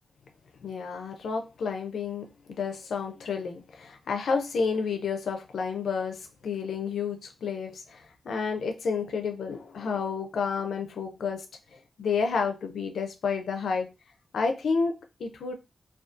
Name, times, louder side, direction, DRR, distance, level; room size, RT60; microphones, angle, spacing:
voice 1, 0.6-11.4 12.0-13.9 14.3-15.5, left 5 dB, 85° left, 0.4 m, -30 dB
2.4 x 2.2 x 2.4 m
wide cardioid pair, 95°, 0 cm